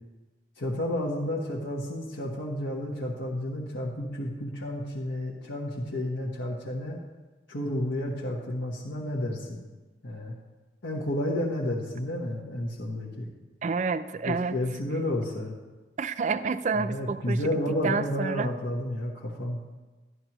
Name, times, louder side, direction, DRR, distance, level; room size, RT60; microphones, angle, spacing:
voice 1, 0.6-7.0 7.5-9.7 10.0-10.3 10.8-13.3 14.3-15.5 16.7-19.6, left 1 dB, 85° left, -4 dB, 1.2 m, -31 dB
voice 2, 13.6-14.6 16.0-17.4 17.8-18.5, right 5 dB, 40° right, 13 dB, 0.4 m, -29 dB
12.5 x 11.0 x 3.0 m, 1.2 s
head